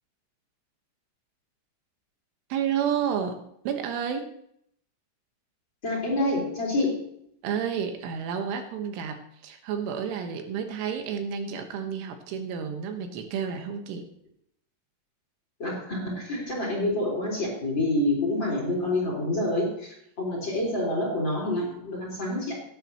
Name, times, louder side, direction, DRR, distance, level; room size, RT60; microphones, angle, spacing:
voice 1, 2.5-4.3 7.4-14.1, right 7 dB, 80° right, 5 dB, 3.7 m, -31 dB
voice 2, 5.8-7.1 15.6-22.6, left 1 dB, 25° left, -2 dB, 3.9 m, -27 dB
17.0 x 10.5 x 2.9 m, 0.69 s
omnidirectional pair, 5.6 m